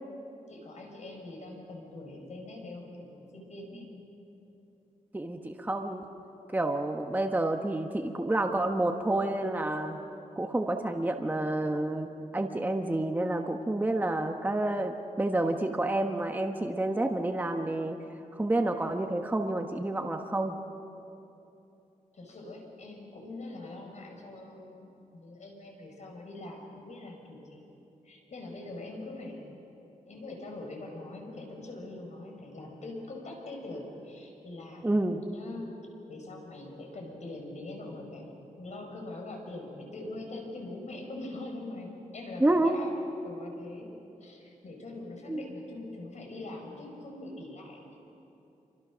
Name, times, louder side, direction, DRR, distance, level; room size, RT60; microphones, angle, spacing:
voice 1, 0.5-3.9 22.1-27.7 28.0-29.5 30.1-34.9 35.2-35.7 36.1-43.0 43.2-43.9 44.2-48.0, left 2 dB, 60° left, 1 dB, 5.6 m, -43 dB
voice 2, 5.1-6.1 6.5-10.0 10.4-18.0 18.4-20.6 34.8-35.2 42.4-42.7 45.3-45.4, right 2 dB, 15° right, 4 dB, 1.2 m, -29 dB
27.5 x 25.0 x 6.3 m, 2.9 s
wide cardioid pair, 110°, 13 cm